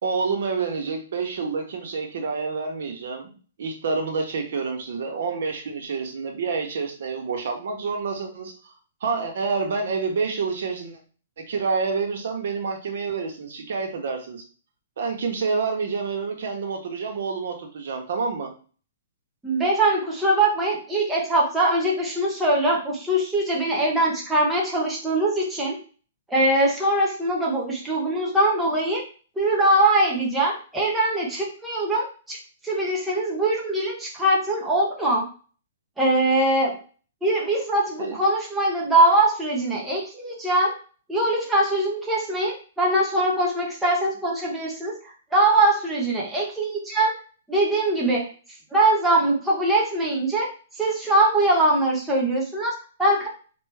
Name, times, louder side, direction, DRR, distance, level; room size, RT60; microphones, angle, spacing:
voice 1, 0.0-8.7 9.0-11.0 11.4-14.4 15.0-18.5 38.0-38.2, right 4 dB, 60° right, 3 dB, 1.2 m, -28 dB
voice 2, 19.4-25.8 26.3-29.1 29.4-35.3 36.0-36.8 37.2-40.8 41.1-47.2 47.5-48.3 48.7-50.5 50.8-53.3, right 1 dB, 5° right, -4 dB, 0.9 m, -22 dB
4.6 x 2.9 x 3.4 m, 0.39 s
hypercardioid pair, 165°, 0 cm